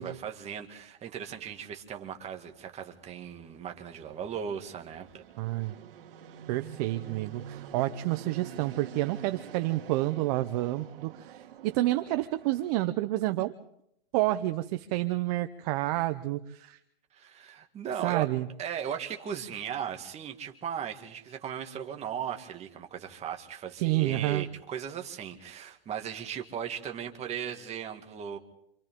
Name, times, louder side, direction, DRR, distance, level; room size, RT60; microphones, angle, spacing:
voice 1, 0.0-5.2 17.1-18.3 18.6-28.4, right 8 dB, 20° right, 4 dB, 2.2 m, -37 dB
Fixed-wing aircraft airplane, 2.5-12.7, right 8 dB, 65° right, 2.4 m, -47 dB
voice 2, 5.4-5.7 6.5-13.5 14.1-16.8 18.0-18.5 23.8-24.4, right 17 dB, 40° right, 10 dB, 0.9 m, -29 dB
29.5 x 27.0 x 3.8 m, 0.74 s
hypercardioid pair, 140°, 30 cm